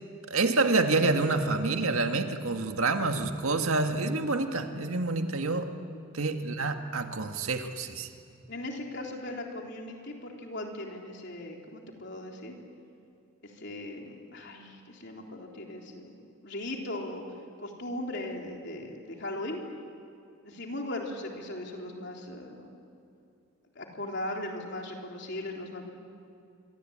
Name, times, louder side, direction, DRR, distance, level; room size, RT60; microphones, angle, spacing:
voice 1, 0.3-5.7 6.1-8.1, right 3 dB, 80° right, 5 dB, 1.8 m, -27 dB
voice 2, 8.5-12.5 13.4-17.2 17.6-19.6 20.4-22.7 23.8-25.9, left 1 dB, 55° left, 1 dB, 3.7 m, -38 dB
26.0 x 24.0 x 8.8 m, 2.6 s
head